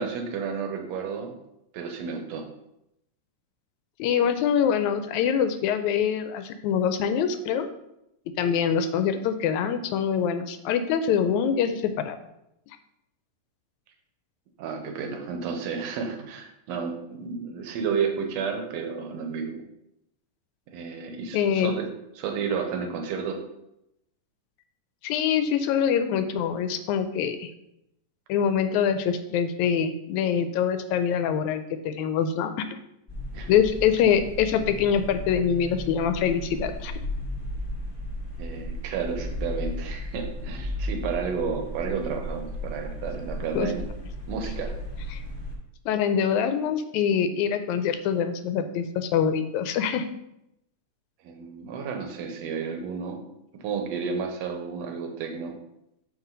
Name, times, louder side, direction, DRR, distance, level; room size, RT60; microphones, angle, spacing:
voice 1, 0.0-1.3 1.7-2.4 14.6-19.6 20.7-21.9 22.2-23.4 33.3-33.5 38.4-43.8 44.3-44.7 51.2-53.2 53.6-55.5, right 6 dB, 65° right, 4 dB, 2.0 m, -31 dB
voice 2, 4.0-7.7 8.4-12.2 21.3-21.7 25.0-27.5 28.3-32.5 33.5-36.9 43.6-43.7 45.1-45.2 45.9-50.1, left 8 dB, 80° left, 9 dB, 1.8 m, -24 dB
sound 1, 33.1-45.5, left 1 dB, 20° left, 0.6 m, -35 dB
7.3 x 6.1 x 3.9 m, 0.83 s
omnidirectional pair, 3.6 m